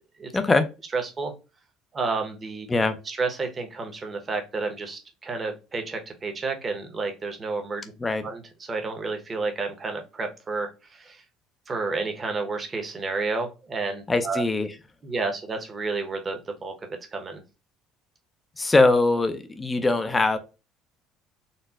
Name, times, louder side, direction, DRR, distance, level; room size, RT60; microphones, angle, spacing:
voice 1, 0.3-0.6 2.7-3.0 8.0-8.2 14.1-14.7 18.6-20.4, left 3 dB, 15° left, 8 dB, 0.4 m, -21 dB
voice 2, 0.9-1.3 1.9-2.7 3.0-7.9 8.2-11.2 11.7-14.4 15.0-17.4, right 4 dB, 25° right, 5 dB, 0.7 m, -31 dB
4.0 x 2.1 x 2.3 m, 0.29 s
cardioid pair, 135°, 0 cm